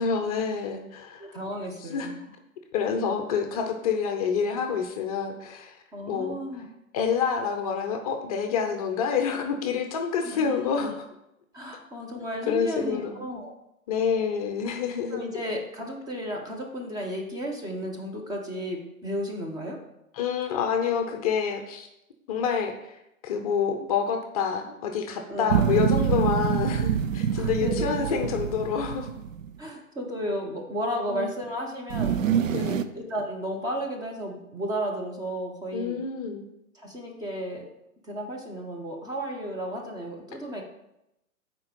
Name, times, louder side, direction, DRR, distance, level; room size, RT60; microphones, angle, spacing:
voice 1, 0.0-1.3 1.8-2.2 2.7-5.8 6.1-6.4 6.9-11.0 12.5-13.3 13.9-15.2 20.1-21.9 22.3-23.0 23.2-29.1 31.1-31.3 32.5-32.9 35.7-36.5, left 6 dB, 25° left, 5 dB, 0.7 m, -28 dB
voice 2, 1.2-2.2 5.9-6.7 10.2-10.9 11.5-13.5 15.1-19.8 25.3-25.9 27.3-28.3 29.6-32.2 32.9-36.0 36.7-37.6 38.1-40.6, equal, 10° right, 1 dB, 0.9 m, -33 dB
sound 1, 25.5-29.5 31.9-32.8, right 8 dB, 65° right, 0.6 m, -25 dB
7.9 x 4.5 x 5.3 m, 0.86 s
figure-of-eight pair, 115°, 42 cm